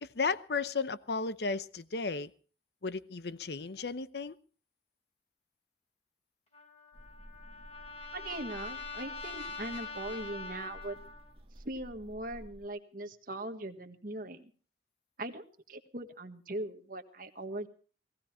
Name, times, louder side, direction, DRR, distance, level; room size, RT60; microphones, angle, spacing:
voice 1, 0.0-2.3 2.8-4.3, left 4 dB, 65° left, 14 dB, 0.8 m, -34 dB
Trumpet, 6.5-11.3, left 4 dB, 35° left, 3.7 m, -44 dB
sound 1, 6.9-12.7, right 1 dB, 35° right, 1.7 m, -53 dB
voice 2, 8.1-11.0 11.6-14.5 15.2-17.7, right 1 dB, 50° right, 6 dB, 1.5 m, -40 dB
18.5 x 15.5 x 4.4 m, 0.41 s
head